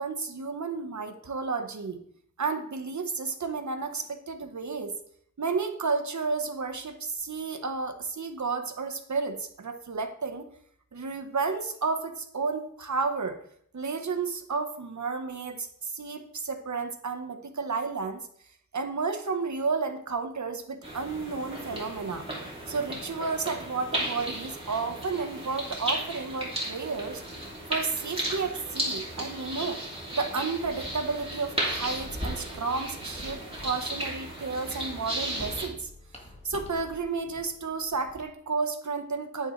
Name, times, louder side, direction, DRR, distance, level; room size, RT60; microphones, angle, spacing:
voice 1, 0.0-2.0 2.4-4.9 5.4-10.5 10.9-13.4 13.7-18.2 18.7-22.3 22.7-27.2 27.7-29.8 30.1-35.9 36.4-39.5, right 4 dB, 55° right, 7 dB, 1.2 m, -32 dB
sound 1, 20.8-35.7, right 1 dB, 15° right, 2.9 m, -35 dB
sound 2, 30.6-38.2, left 1 dB, 20° left, 1.9 m, -44 dB
9.6 x 9.1 x 3.2 m, 0.65 s
wide cardioid pair, 90°, 34 cm